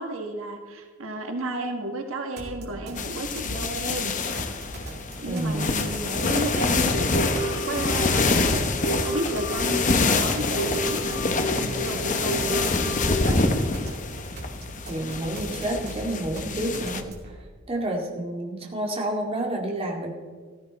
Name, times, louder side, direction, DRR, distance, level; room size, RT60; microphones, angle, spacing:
voice 1, 0.0-4.1 4.8-4.9 5.2-13.8, right 2 dB, 85° right, 4 dB, 1.5 m, -33 dB
sound 1, 2.4-17.4, right 1 dB, 50° right, 2.6 m, -40 dB
sound 2, 3.0-17.0, left 3 dB, 40° left, 0.9 m, -26 dB
voice 2, 5.2-5.8 14.9-17.1 17.7-20.1, right 1 dB, 30° right, 0 dB, 2.2 m, -29 dB
sound 3, 7.0-13.9, right 1 dB, 75° left, 1.7 m, -32 dB
14.5 x 14.0 x 4.2 m, 1.5 s
head